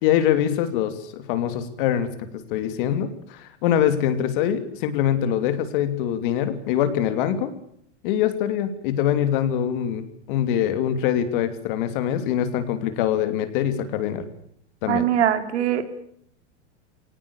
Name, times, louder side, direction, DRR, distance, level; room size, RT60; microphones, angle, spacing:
voice 1, 0.0-7.5 8.0-14.2 14.8-15.0, left 10 dB, 45° left, 10 dB, 3.0 m, -24 dB
voice 2, 14.9-16.0, right 10 dB, 75° right, 9 dB, 3.2 m, -22 dB
23.5 x 18.5 x 8.3 m, 0.68 s
supercardioid pair, 155°, 35 cm